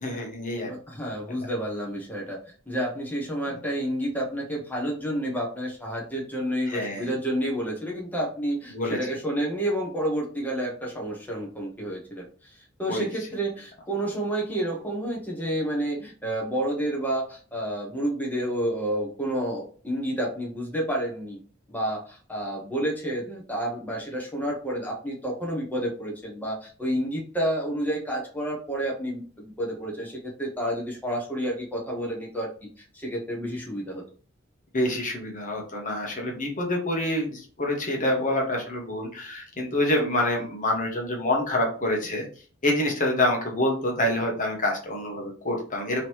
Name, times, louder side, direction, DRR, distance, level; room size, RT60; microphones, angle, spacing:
voice 1, 0.0-0.7 6.7-7.1 8.7-9.0 12.9-13.1 34.7-42.3 42.6-46.1, left 1 dB, 40° left, 0 dB, 1.2 m, -27 dB
voice 2, 0.7-2.4 2.7-21.4 21.7-34.0, right 1 dB, 10° left, -2 dB, 1.2 m, -30 dB
3.8 x 3.1 x 4.6 m, 0.41 s
head